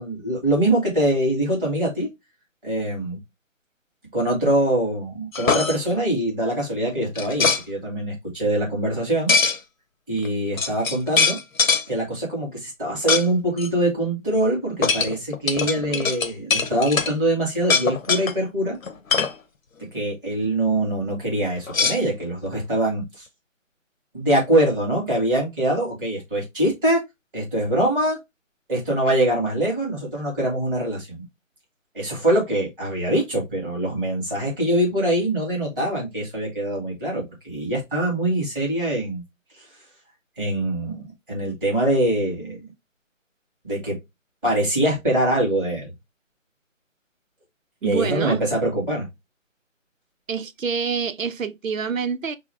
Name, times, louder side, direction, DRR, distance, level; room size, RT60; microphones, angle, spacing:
voice 1, 0.0-2.1 2.6-3.2 4.1-9.3 10.1-11.4 11.9-18.7 19.9-23.2 24.1-27.0 27.3-28.2 28.7-31.2 31.9-39.2 40.4-42.6 43.6-44.0 44.4-45.9 47.8-49.1, right 1 dB, 5° right, 1.4 m, -23 dB
sound 1, 5.3-5.8 7.1-7.6 9.3-9.6 10.2-10.3 10.6-11.8 13.1-13.3 13.6-13.7 14.8-17.1 17.6-18.3 18.8-19.3 21.7-22.5, left 5 dB, 80° left, 0.8 m, -22 dB
voice 2, 47.8-48.4 50.3-52.4, right 6 dB, 80° right, 0.7 m, -26 dB
5.1 x 2.3 x 3.3 m
figure-of-eight pair, 165°, 40 cm